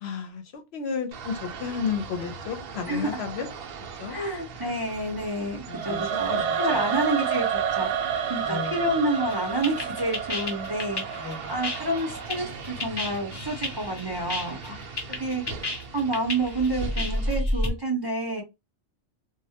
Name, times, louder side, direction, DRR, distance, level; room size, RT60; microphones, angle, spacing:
voice 1, 0.0-3.5 4.0-4.2 4.6-4.8 5.7-6.9 8.4-8.8 11.1-11.6, left 6 dB, 70° left, 0.8 m, -33 dB
sound 1, 1.1-17.4, right 4 dB, 65° right, 0.7 m, -40 dB
voice 2, 2.9-3.2 4.1-14.8 15.2-15.7 15.9-18.4, right 1 dB, 30° right, 0.5 m, -29 dB
Singing / Musical instrument, 5.7-12.8, right 8 dB, 90° right, 0.9 m, -30 dB
sound 2, 9.1-17.7, left 1 dB, 30° left, 0.5 m, -31 dB
2.2 x 2.0 x 2.7 m
omnidirectional pair, 1.2 m